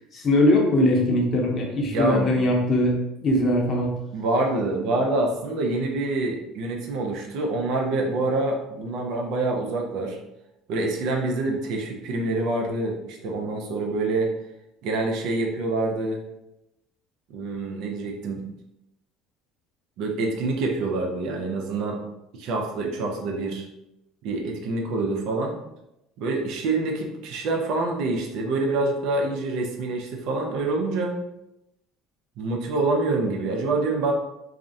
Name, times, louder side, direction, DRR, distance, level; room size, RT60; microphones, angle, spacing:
voice 1, 0.1-4.0, left 1 dB, 40° left, 0 dB, 0.6 m, -21 dB
voice 2, 1.9-2.3 4.1-10.2 10.7-14.3 14.8-16.2 17.3-18.4 20.0-22.0 22.3-23.7 24.2-25.6 26.2-31.2 32.4-34.1, right 2 dB, 70° right, 1 dB, 0.5 m, -26 dB
2.4 x 2.0 x 2.6 m, 0.89 s
supercardioid pair, 105°, 0 cm